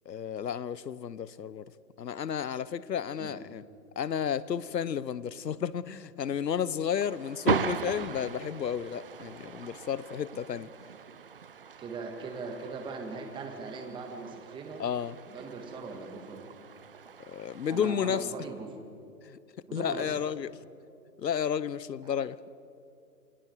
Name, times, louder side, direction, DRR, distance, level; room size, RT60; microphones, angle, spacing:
voice 1, 0.1-1.7 2.0-3.6 4.0-10.7 14.8-15.2 17.2-18.3 19.2-19.4 19.7-20.5 21.2-22.4, left 8 dB, 85° left, 1.0 m, -32 dB
sound 1, 7.0-17.9, right 7 dB, 35° right, 0.5 m, -38 dB
voice 2, 11.8-14.8 15.3-16.4 17.7-18.7 19.7-20.3 22.0-22.1, right 4 dB, 10° right, 1.8 m, -40 dB
28.0 x 25.0 x 4.7 m
hypercardioid pair, 150°, 49 cm